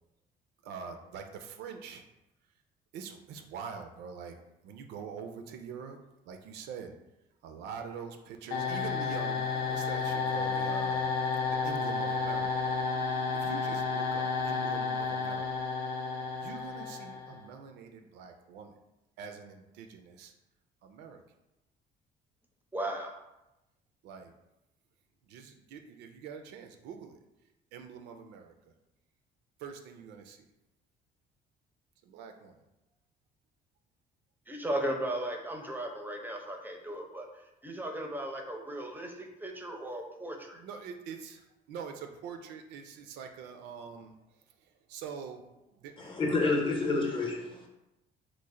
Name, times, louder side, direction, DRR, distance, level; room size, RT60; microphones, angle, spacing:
voice 1, 0.6-2.0 2.9-4.4 4.6-6.0 6.3-6.9 7.4-11.1 11.5-12.7 13.3-15.5 16.4-18.8 19.2-20.3 20.8-21.2 24.0-24.3 25.3-27.2 27.7-28.5 29.6-30.4 32.0-32.6 40.5-44.1 44.9-45.4 45.7-46.2, right 6 dB, 85° right, 6 dB, 0.4 m, -44 dB
sound 1, 8.5-17.4, left 4 dB, 70° left, 0.6 m, -31 dB
voice 2, 22.7-23.1 34.5-40.6, right 1 dB, 10° right, 3 dB, 0.5 m, -36 dB
voice 3, 46.0-47.7, left 3 dB, 30° left, 1 dB, 0.7 m, -29 dB
3.1 x 2.0 x 3.6 m, 0.93 s
cardioid pair, 110°, 17 cm